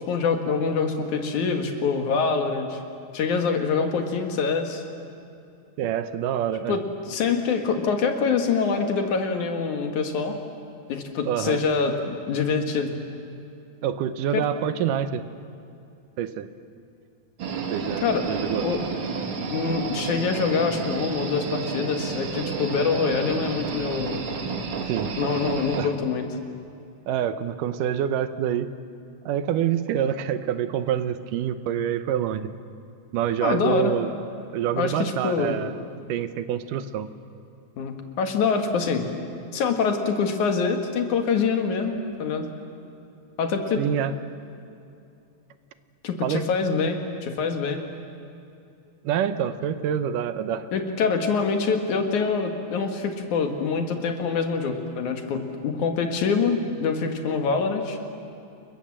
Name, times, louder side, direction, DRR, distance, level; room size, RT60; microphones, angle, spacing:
voice 1, 0.1-2.8 3.1-4.8 6.7-6.8 7.1-10.4 10.9-12.9 14.3-14.4 18.0-18.2 18.6-18.8 19.5-24.3 25.2-26.3 33.4-33.9 34.8-35.6 37.8-39.1 39.5-42.5 43.4-43.8 46.0-47.8 50.7-58.0, left 5 dB, 70° left, 5 dB, 3.1 m, -25 dB
voice 2, 5.8-6.8 11.3-11.6 13.8-15.2 16.2-16.5 17.7-18.7 24.9-25.1 25.8-25.9 27.1-28.7 29.3-32.5 33.1-34.1 34.5-35.7 36.1-37.1 43.8-44.1 46.2-46.5 49.0-50.7, right 9 dB, 85° right, 11 dB, 2.5 m, -26 dB
sound 1, 17.4-25.9, right 5 dB, 45° right, 2.2 m, -31 dB
29.0 x 22.0 x 7.5 m, 2.7 s
omnidirectional pair, 3.7 m